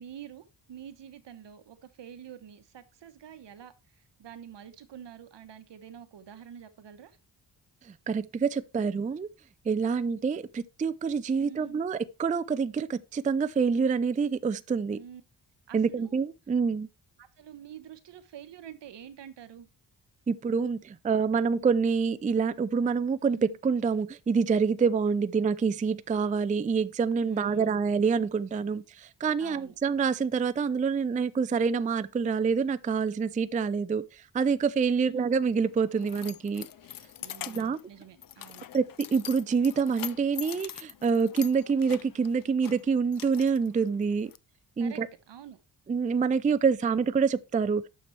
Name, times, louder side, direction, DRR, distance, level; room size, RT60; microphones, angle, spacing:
voice 1, 0.0-7.2 11.4-11.7 14.9-15.2 15.7-16.2 17.2-19.7 23.3-23.6 27.2-27.8 29.4-29.8 35.0-35.3 37.2-38.6 44.8-45.6, right 9 dB, 75° right, 1.2 m, -47 dB
voice 2, 8.1-9.3 9.7-15.0 15.7-16.9 20.3-36.7 37.5-37.8 38.7-38.8 39.1-44.3 44.8-45.1 45.9-47.9, right 5 dB, 20° right, 0.4 m, -26 dB
Keys jangling, 35.3-44.4, left 10 dB, 50° left, 0.5 m, -44 dB
9.3 x 6.7 x 3.3 m
wide cardioid pair, 105°, 43 cm